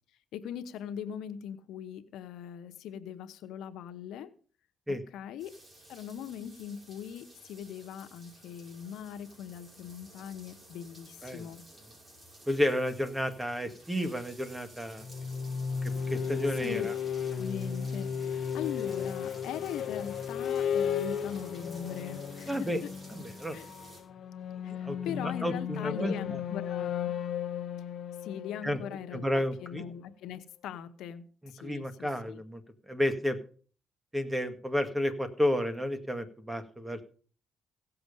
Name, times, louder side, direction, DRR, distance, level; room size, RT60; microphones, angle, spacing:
voice 1, 0.3-4.3 4.9-5.5 5.9-11.6 16.6-16.9 17.4-22.9 23.5-23.7 24.6-27.1 28.2-31.2 31.5-32.4, left 9 dB, 85° left, 0.9 m, -41 dB
sound 1, 5.4-24.0, right 1 dB, 35° right, 5.9 m, -54 dB
voice 2, 12.5-15.0 15.8-16.9 22.5-22.8 23.1-23.6 24.7-26.1 28.6-28.8 29.1-29.8 31.6-32.6 32.9-33.4 34.1-37.0, left 1 dB, 10° right, 1.7 m, -31 dB
sound 2, 15.0-29.6, left 7 dB, 60° left, 0.9 m, -35 dB
16.5 x 6.9 x 5.4 m
cardioid pair, 90°, 0 cm